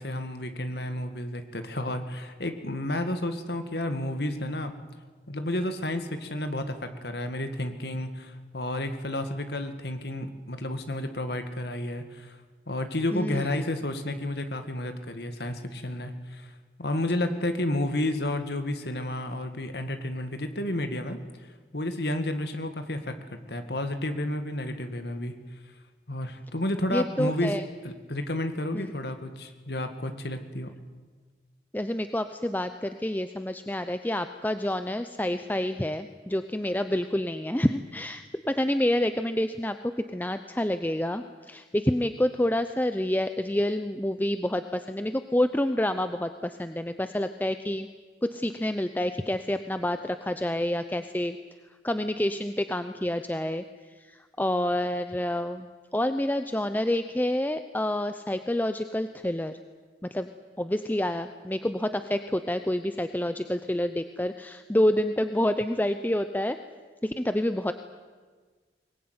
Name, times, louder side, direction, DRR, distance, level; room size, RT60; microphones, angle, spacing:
voice 1, 0.0-4.7 5.3-12.4 12.7-16.5 16.8-21.2 21.7-25.4 26.1-27.5 27.8-30.7, left 1 dB, 60° left, 8 dB, 2.0 m, -31 dB
voice 2, 13.1-13.7 26.9-27.7 28.7-28.9 31.7-47.9 48.2-51.4 51.8-59.6 60.0-60.3 60.6-66.6 67.0-67.7, left 1 dB, 10° left, 9 dB, 0.6 m, -28 dB
22.5 x 20.0 x 9.6 m, 1.5 s
head